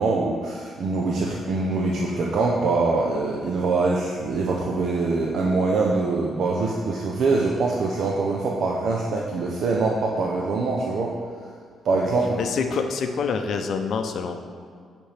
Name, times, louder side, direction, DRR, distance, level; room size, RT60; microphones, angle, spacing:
voice 1, 0.0-11.1 11.8-12.3, right 3 dB, 65° right, -2 dB, 0.6 m, -24 dB
voice 2, 12.4-14.4, left 5 dB, 65° left, 6 dB, 0.6 m, -26 dB
8.1 x 4.3 x 3.4 m, 2.1 s
cardioid pair, 90°, 0 cm